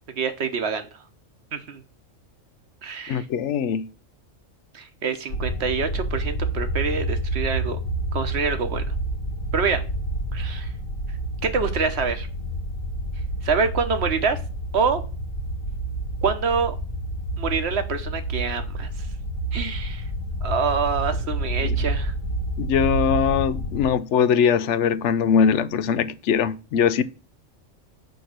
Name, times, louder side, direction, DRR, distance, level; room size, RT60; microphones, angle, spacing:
voice 1, 0.2-0.9 1.5-1.8 2.8-3.3 4.7-7.8 8.1-9.0 9.5-9.8 10.3-10.7 11.4-12.3 13.4-14.4 14.7-15.0 16.2-16.8 17.4-19.1 19.5-20.1 20.4-22.1, right 5 dB, 60° right, 1.2 m, -26 dB
voice 2, 3.1-3.9 21.6-21.8 22.6-27.0, left 7 dB, 70° left, 0.9 m, -21 dB
sound 1, 5.3-23.9, right 1 dB, 85° left, 1.5 m, -29 dB
7.9 x 4.4 x 6.5 m
omnidirectional pair, 1.3 m